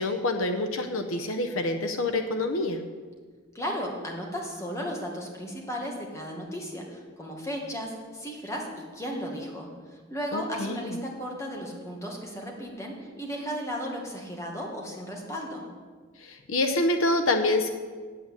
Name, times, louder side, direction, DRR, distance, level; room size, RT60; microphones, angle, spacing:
voice 1, 0.0-2.8 10.3-11.0 16.2-17.7, left 2 dB, 75° left, 7 dB, 0.8 m, -27 dB
voice 2, 3.5-15.7, equal, 15° left, 0 dB, 1.8 m, -35 dB
8.6 x 8.1 x 8.2 m, 1.5 s
head